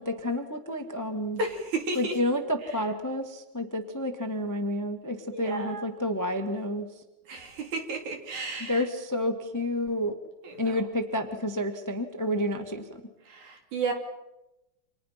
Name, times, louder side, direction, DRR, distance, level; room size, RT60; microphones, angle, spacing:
voice 1, 0.0-1.4 1.9-6.9 8.7-10.1 10.6-12.8, left 1 dB, 10° left, 6 dB, 1.1 m, -30 dB
voice 2, 1.4-2.2 5.3-5.9 7.3-8.9 10.4-10.7 13.3-13.9, right 3 dB, 70° right, 3 dB, 4.5 m, -33 dB
29.5 x 27.0 x 5.9 m, 0.98 s
omnidirectional pair, 3.5 m